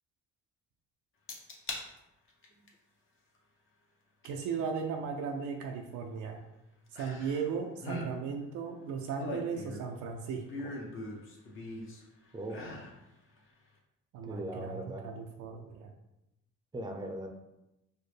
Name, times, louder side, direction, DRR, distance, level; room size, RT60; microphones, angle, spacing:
sound 1, 1.3-1.8 2.3-2.7 4.2-4.3 7.0-7.5 7.8-8.1 8.9-10.0 10.5-12.0 12.5-13.0 13.4-13.5, left 2 dB, 45° left, 0.8 m, -41 dB
voice 1, 4.2-6.4 6.9-10.8 14.1-15.9, right 6 dB, 80° right, 2 dB, 0.5 m, -37 dB
voice 2, 12.3-12.7 14.2-15.1 16.7-17.3, right 1 dB, 15° right, 4 dB, 0.5 m, -39 dB
4.3 x 2.0 x 3.2 m, 0.90 s
cardioid pair, 90°, 30 cm